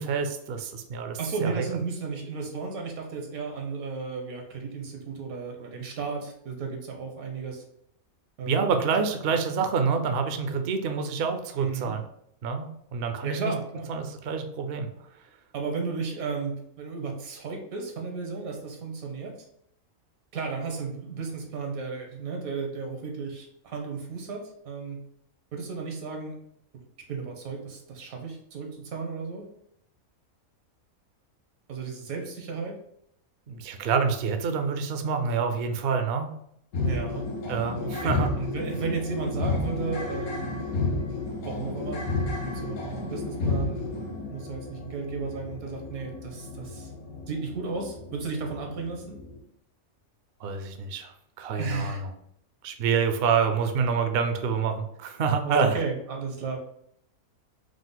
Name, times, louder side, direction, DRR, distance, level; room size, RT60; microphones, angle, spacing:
voice 1, 0.0-1.6 8.5-12.0 12.4-13.5 13.9-14.9 33.5-36.3 37.5-38.3 50.4-51.1 51.4-52.1 52.6-55.8, right 5 dB, 60° right, 6 dB, 0.6 m, -27 dB
voice 2, 1.2-7.6 8.4-8.8 11.6-12.0 13.2-13.9 15.5-19.4 20.3-25.0 25.5-26.4 27.1-29.5 31.7-32.8 36.8-37.3 37.8-40.7 41.4-46.9 47.3-49.2 51.6-52.0 55.4-56.6, right 5 dB, 80° right, 2 dB, 1.4 m, -34 dB
sound 1, 36.7-49.4, left 3 dB, 80° left, 1.3 m, -32 dB
4.9 x 2.1 x 3.9 m, 0.70 s
omnidirectional pair, 1.5 m